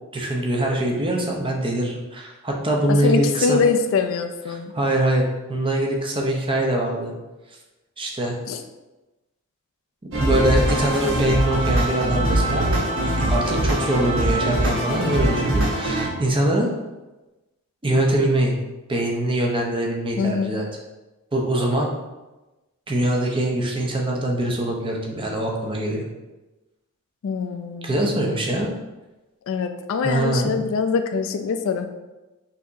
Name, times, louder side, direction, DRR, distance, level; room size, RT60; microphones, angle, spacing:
voice 1, 0.1-3.6 4.5-7.1 8.0-8.4 10.0-12.7 13.0-16.7 17.8-18.5 18.9-20.7 21.3-21.9 22.9-26.0 27.8-28.7 30.0-30.5, right 1 dB, 25° right, 0 dB, 0.6 m, -23 dB
voice 2, 2.9-4.7 8.5-8.6 20.2-20.5 27.2-28.0 29.5-31.9, left 5 dB, 60° left, 7 dB, 0.3 m, -23 dB
sound 1, 10.1-16.1, right 1 dB, 60° right, 0.9 m, -22 dB
5.7 x 2.9 x 2.6 m, 1.1 s
head